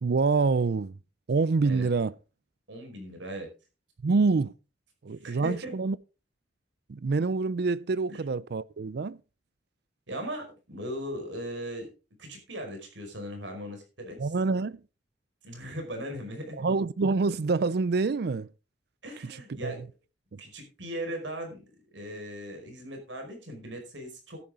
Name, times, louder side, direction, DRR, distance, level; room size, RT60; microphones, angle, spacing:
voice 1, 0.0-0.9 1.3-2.1 4.0-4.5 5.0-6.0 6.9-9.2 14.2-14.8 16.6-18.5 19.6-19.7 20.3-20.4, right 4 dB, 60° right, 0.4 m, -26 dB
voice 2, 2.7-3.5 5.2-5.7 8.1-8.2 10.1-11.9 12.2-14.3 15.4-16.6 19.0-19.8 20.4-21.6 21.9-24.4, equal, 90° right, 5.1 m, -38 dB
13.0 x 10.5 x 3.7 m
head